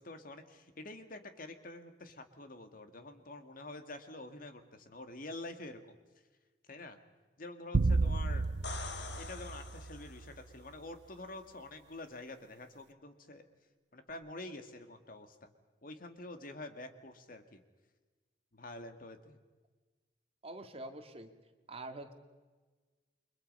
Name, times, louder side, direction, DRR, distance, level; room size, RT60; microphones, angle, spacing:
voice 1, 0.0-5.8 6.7-7.0 7.4-8.4 9.1-13.5 13.9-15.5 15.8-17.6 18.5-19.4, left 2 dB, 55° left, 8 dB, 1.9 m, -47 dB
sound 1, 7.7-10.2, right 3 dB, 85° right, 0.7 m, -32 dB
sound 2, 8.4-10.4 14.1-14.2, left 4 dB, 80° left, 1.8 m, -45 dB
voice 2, 20.4-21.3 21.7-22.1, right 2 dB, 35° right, 6 dB, 2.1 m, -45 dB
29.5 x 23.5 x 5.5 m, 1.3 s
head